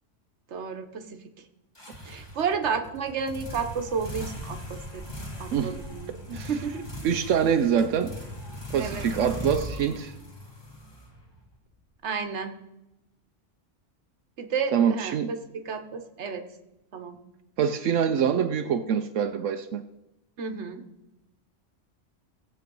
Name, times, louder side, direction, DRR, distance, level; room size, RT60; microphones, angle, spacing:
voice 1, 0.5-1.2 2.0-6.8 8.8-9.0 12.0-12.6 14.4-16.4 16.9-17.2 20.4-20.8, right 5 dB, 65° right, 7 dB, 1.4 m, -32 dB
sound 1, 1.7-11.5, equal, 20° left, 1.5 m, -39 dB
voice 2, 7.0-8.1 8.7-10.1 14.7-15.3 17.6-19.8, right 8 dB, 85° right, 6 dB, 1.0 m, -25 dB
18.0 x 7.6 x 5.3 m, 0.94 s
omnidirectional pair, 1.3 m